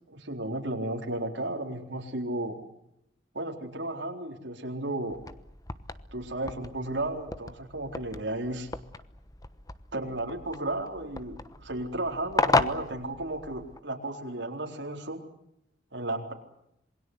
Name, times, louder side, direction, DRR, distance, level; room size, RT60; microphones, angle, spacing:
voice 1, 0.1-2.6 3.3-5.2 6.1-8.7 9.9-15.2 15.9-16.3, right 1 dB, 70° right, 1 dB, 4.2 m, -34 dB
sound 1, 5.1-13.8, left 3 dB, 20° left, 1.1 m, -34 dB
27.5 x 21.5 x 8.1 m, 0.79 s
head